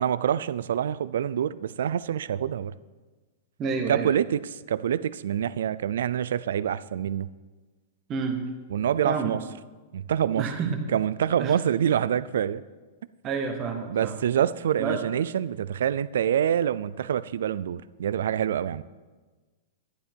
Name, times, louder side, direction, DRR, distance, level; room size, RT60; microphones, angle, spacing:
voice 1, 0.0-2.7 3.9-7.3 8.7-9.4 9.9-10.5 10.9-12.6 13.9-18.8, right 9 dB, 75° right, 18 dB, 0.4 m, -26 dB
voice 2, 3.6-4.1 8.1-8.4 9.0-9.3 10.3-10.8 11.4-11.5 13.2-14.2 14.8-15.0, right 5 dB, 20° right, 4 dB, 1.2 m, -29 dB
11.5 x 11.0 x 4.5 m, 1.3 s
supercardioid pair, 175°, 0 cm